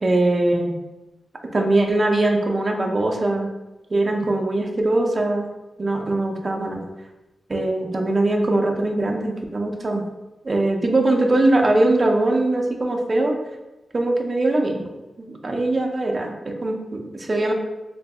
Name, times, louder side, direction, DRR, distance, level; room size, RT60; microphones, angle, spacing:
voice 1, 0.0-0.8 1.5-3.5 3.9-5.5 5.8-6.8 7.5-10.0 10.4-13.4 13.9-14.9 15.2-17.5, right 2 dB, 40° right, 2 dB, 0.5 m, -21 dB
3.8 x 2.7 x 2.3 m, 1.0 s
wide cardioid pair, 85°, 0 cm